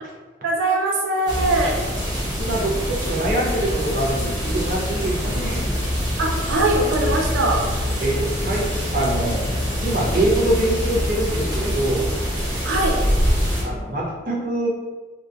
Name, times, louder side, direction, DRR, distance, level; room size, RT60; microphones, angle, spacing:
voice 1, 0.4-1.8 6.2-7.7 12.6-13.0, right 2 dB, 85° right, 0 dB, 0.4 m, -21 dB
sound 1, 1.3-13.6, equal, 20° right, 1.2 m, -24 dB
voice 2, 2.4-5.7 8.0-9.4 9.8-12.1 13.6-14.7, right 1 dB, 45° right, -3 dB, 0.7 m, -24 dB
sound 2, 5.0-10.9, left 2 dB, 70° left, 0.4 m, -41 dB
2.8 x 2.5 x 3.6 m, 1.3 s
head